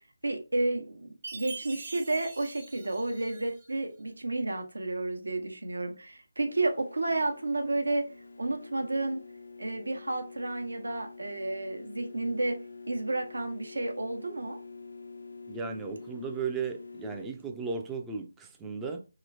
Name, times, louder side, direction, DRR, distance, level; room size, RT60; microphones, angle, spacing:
voice 1, 0.2-8.1 8.4-9.2 9.6-12.6 12.9-14.6, right 2 dB, 80° right, 0.8 m, -31 dB
Chime, 1.2-3.7, right 4 dB, 40° right, 0.8 m, -44 dB
sound 1, 6.5-17.3, left 4 dB, 75° left, 0.4 m, -47 dB
voice 2, 15.5-19.0, right 5 dB, 10° right, 0.4 m, -35 dB
3.0 x 3.0 x 2.6 m
figure-of-eight pair, 155°, 0 cm